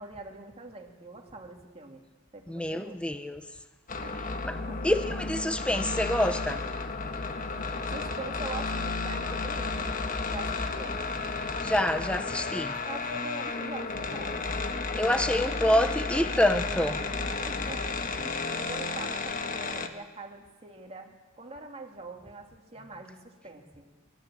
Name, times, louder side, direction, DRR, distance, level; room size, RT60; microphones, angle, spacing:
voice 1, 0.0-2.0 2.3-3.0 4.0-4.3 4.5-4.9 7.9-9.9 10.3-11.4 12.8-14.6 17.4-18.2 18.5-23.9, right 3 dB, 30° right, 2.6 m, -43 dB
voice 2, 2.5-3.4 4.4-6.7 11.6-12.7 14.9-17.1 18.2-18.4, left 1 dB, 5° left, 0.8 m, -27 dB
sound 1, 3.9-19.9, left 3 dB, 40° left, 1.3 m, -32 dB
28.0 x 13.5 x 7.7 m
head